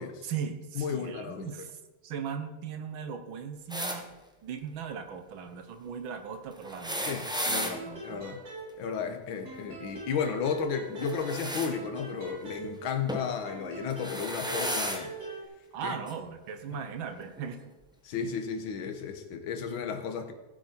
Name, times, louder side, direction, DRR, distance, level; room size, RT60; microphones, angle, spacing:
voice 1, 0.2-1.8 2.0-4.1 4.4-8.2 15.7-17.8, right 7 dB, 70° right, 8 dB, 1.6 m, -38 dB
voice 2, 0.8-1.5 7.1-8.4 8.8-15.1 15.8-16.0 16.7-16.8 18.0-20.3, left 6 dB, 65° left, 6 dB, 1.8 m, -33 dB
sound 1, 3.7-4.0 6.6-7.7 11.0-11.7 13.1-13.3 13.9-15.0 16.1-16.2 17.4-17.5, equal, 5° right, 0.3 m, -33 dB
sound 2, 7.5-9.1 9.5-13.1 13.5-15.5, right 3 dB, 45° right, 3.2 m, -42 dB
15.5 x 8.1 x 4.4 m, 1.1 s
omnidirectional pair, 2.4 m